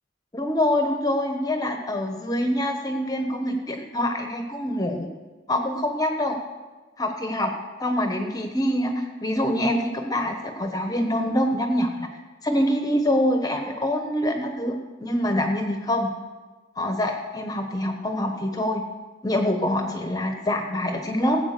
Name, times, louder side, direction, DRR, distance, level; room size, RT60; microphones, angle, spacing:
voice 1, 0.3-5.1 5.5-6.4 7.0-7.5 7.8-12.1 12.4-14.7 15.0-16.1 16.8-18.8 19.2-21.4, left 1 dB, 20° left, 4 dB, 1.1 m, -25 dB
16.5 x 8.6 x 6.7 m, 1.3 s
head